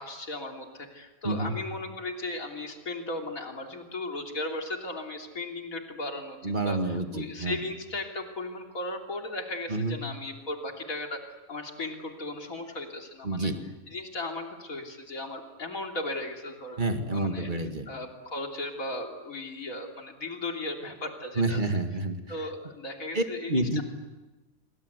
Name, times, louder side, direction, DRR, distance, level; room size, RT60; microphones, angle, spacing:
voice 1, 0.0-11.2 11.5-13.5 13.9-16.8 17.1-17.5 17.9-21.6 22.3-23.8, left 2 dB, 75° left, 2 dB, 3.6 m, -36 dB
voice 2, 6.4-7.6 9.7-10.0 13.2-13.6 16.8-17.9 21.4-22.2 23.1-23.8, right 2 dB, 35° right, 6 dB, 2.2 m, -28 dB
27.5 x 24.5 x 8.2 m, 1.2 s
omnidirectional pair, 1.4 m